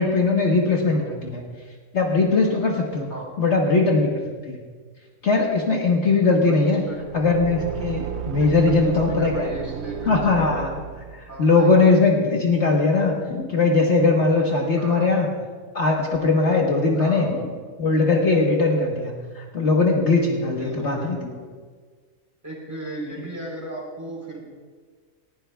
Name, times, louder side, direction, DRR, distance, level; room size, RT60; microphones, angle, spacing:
voice 1, 0.0-1.4 1.9-3.1 3.4-4.6 5.2-6.8 7.1-9.5 10.1-10.8 11.2-13.1 13.5-15.3 15.7-17.3 17.8-21.2, left 3 dB, 55° left, -1 dB, 1.5 m, -20 dB
voice 2, 6.3-7.0 8.4-10.6 11.3-12.0 14.7-15.1 17.0-17.4 20.4-21.4 22.4-24.4, right 1 dB, 10° right, -3 dB, 3.8 m, -36 dB
Car / Engine, 6.9-11.4, right 10 dB, 65° right, 0.7 m, -33 dB
sound 1, 13.3-14.2 17.3-18.2, left 5 dB, 80° left, 1.5 m, -37 dB
19.0 x 16.0 x 2.3 m, 1.5 s
omnidirectional pair, 1.4 m